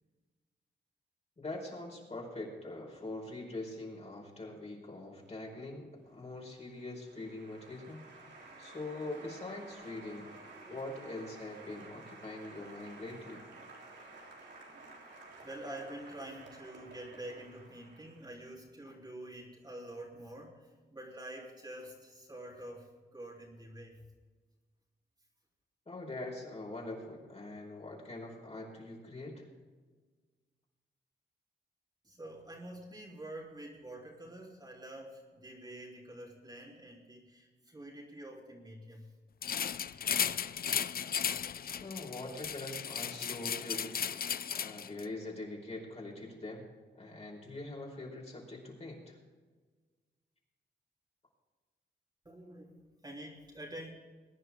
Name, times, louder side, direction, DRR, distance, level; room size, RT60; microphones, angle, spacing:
voice 1, 1.4-8.0 8.6-10.3 10.7-13.5 25.8-29.5 41.8-44.2 44.5-46.6 46.9-49.2, left 2 dB, 35° left, -1 dB, 5.1 m, -43 dB
Applause, 6.0-18.5, right 3 dB, 75° right, 3.6 m, -53 dB
voice 2, 9.7-10.1 10.5-10.8 14.6-14.7 15.4-24.1 32.0-39.1 39.7-39.9 52.3-53.9, right 1 dB, 20° right, -3 dB, 3.5 m, -47 dB
sound 1, 39.4-45.1, left 8 dB, 55° left, 0.5 m, -35 dB
21.5 x 10.5 x 3.7 m, 1.4 s
cardioid pair, 95°, 19 cm